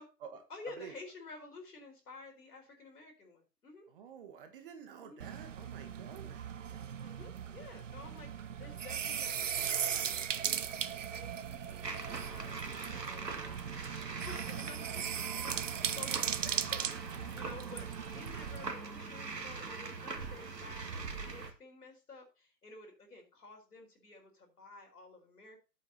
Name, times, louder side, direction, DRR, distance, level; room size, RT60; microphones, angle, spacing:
voice 1, 0.5-3.9 5.0-5.2 7.0-13.6 14.0-25.6, left 3 dB, 65° left, 4.9 m, -52 dB
voice 2, 3.9-6.4, right 7 dB, 30° right, 1.6 m, -49 dB
sound 1, 5.2-18.7, right 8 dB, 50° right, 0.7 m, -38 dB
sound 2, 11.8-21.5, right 4 dB, 75° right, 1.9 m, -42 dB
13.0 x 8.4 x 2.9 m
figure-of-eight pair, 135°, 50 cm